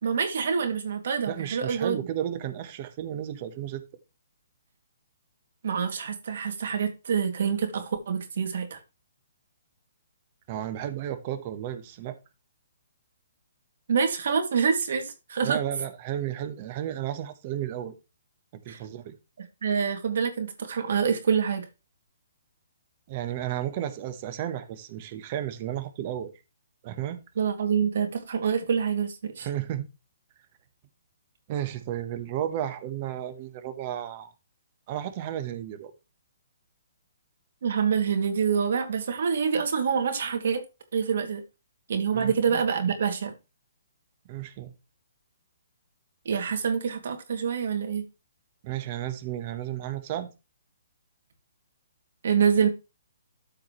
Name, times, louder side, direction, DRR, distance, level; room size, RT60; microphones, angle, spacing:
voice 1, 0.0-2.0 5.6-8.8 13.9-15.6 18.7-18.8 19.4-21.6 27.4-29.5 37.6-40.6 40.9-41.4 41.9-43.3 46.2-48.0 52.2-52.7, right 6 dB, 65° right, 2.5 m, -26 dB
voice 2, 1.3-3.8 10.5-12.2 15.4-17.9 18.6-19.1 23.1-26.3 26.8-27.2 29.4-29.9 31.5-34.3 34.9-35.9 42.1-42.6 44.3-44.7 48.6-50.3, right 11 dB, 35° right, 1.2 m, -33 dB
13.5 x 4.8 x 3.2 m
hypercardioid pair, 155°, 0 cm